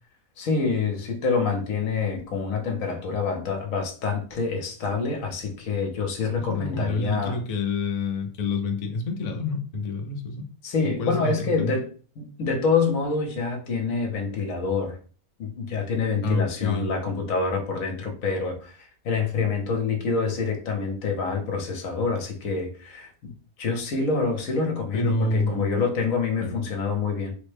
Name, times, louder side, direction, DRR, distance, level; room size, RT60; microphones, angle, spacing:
voice 1, 0.4-7.4 10.6-15.0 15.4-27.4, left 4 dB, 70° left, 1.1 m, -27 dB
voice 2, 6.5-10.4 10.8-11.7 16.2-16.9 24.9-25.8 26.4-26.6, left 3 dB, 85° left, 0.3 m, -27 dB
3.4 x 2.1 x 3.2 m
omnidirectional pair, 1.5 m